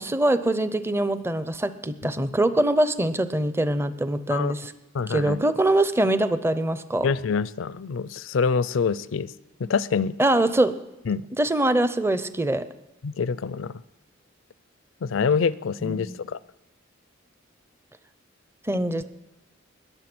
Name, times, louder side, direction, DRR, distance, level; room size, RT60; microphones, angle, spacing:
voice 1, 0.0-4.7 5.1-7.1 10.2-10.7 11.4-12.6 15.8-16.2 18.7-19.0, right 1 dB, 15° right, 12 dB, 0.6 m, -23 dB
voice 2, 4.9-5.4 7.0-9.3 9.6-10.2 11.1-11.3 13.0-13.7 15.0-16.4, left 5 dB, 75° left, 19 dB, 0.5 m, -25 dB
20.5 x 7.3 x 6.1 m, 0.98 s
head